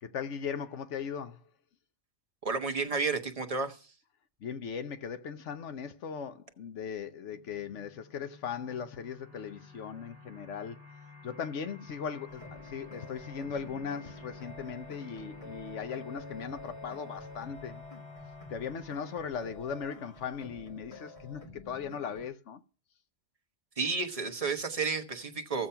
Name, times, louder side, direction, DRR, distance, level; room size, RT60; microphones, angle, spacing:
voice 1, 0.0-1.4 4.4-10.8 11.2-17.8 18.5-22.6, left 7 dB, 75° left, 1.1 m, -38 dB
voice 2, 2.4-3.8 23.8-25.7, right 4 dB, 30° right, 1.2 m, -31 dB
sound 1, 7.3-19.3, left 5 dB, 10° left, 3.8 m, -51 dB
sound 2, 12.3-22.2, left 1 dB, 30° left, 1.5 m, -49 dB
15.0 x 7.3 x 5.6 m
omnidirectional pair, 1.3 m